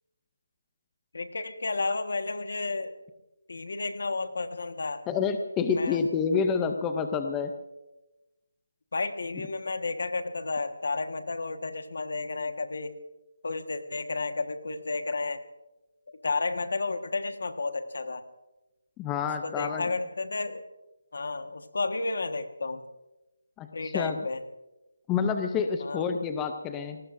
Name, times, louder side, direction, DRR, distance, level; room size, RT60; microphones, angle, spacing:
voice 1, 1.1-2.9 3.5-5.0 5.7-6.0 8.9-13.0 13.4-15.4 16.2-18.2 19.4-20.6 21.1-22.8 23.7-24.4 25.8-26.0, left 3 dB, 60° left, 9 dB, 1.4 m, -32 dB
voice 2, 5.1-7.5 19.0-19.9 23.6-24.2 25.1-27.0, left 6 dB, 10° left, 6 dB, 0.5 m, -28 dB
29.0 x 19.0 x 2.6 m, 1.0 s
hypercardioid pair, 175°, 0 cm